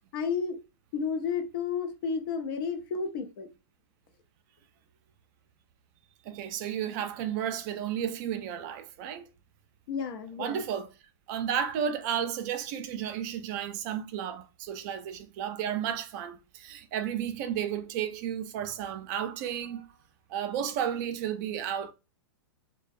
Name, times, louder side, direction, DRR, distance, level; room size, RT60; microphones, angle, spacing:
voice 1, 0.1-0.6 0.9-3.5 9.9-10.6, left 5 dB, 55° left, 0.6 m, -32 dB
voice 2, 6.2-9.3 10.4-10.9 11.3-19.9 20.3-21.9, right 9 dB, 45° right, 0.5 m, -33 dB
2.5 x 2.2 x 2.4 m
hypercardioid pair, 125°, 13 cm